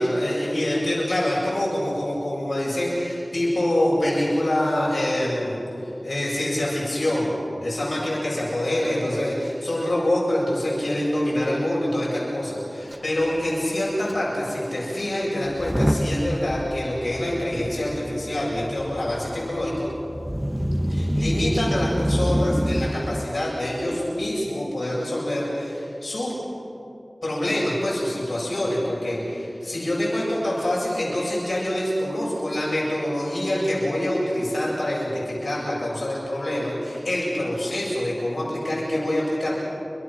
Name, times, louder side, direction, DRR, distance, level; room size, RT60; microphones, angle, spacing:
voice 1, 0.0-19.9 20.9-26.3 27.2-39.5, left 1 dB, 80° left, -6 dB, 7.8 m, -25 dB
Motor vehicle (road) / Engine starting / Accelerating revving vroom, 12.9-13.0 13.2-13.5 14.1-14.2 15.5-23.2, equal, 5° right, 1.1 m, -27 dB
29.0 x 26.0 x 6.5 m, 2.7 s
wide cardioid pair, 45°, 0 cm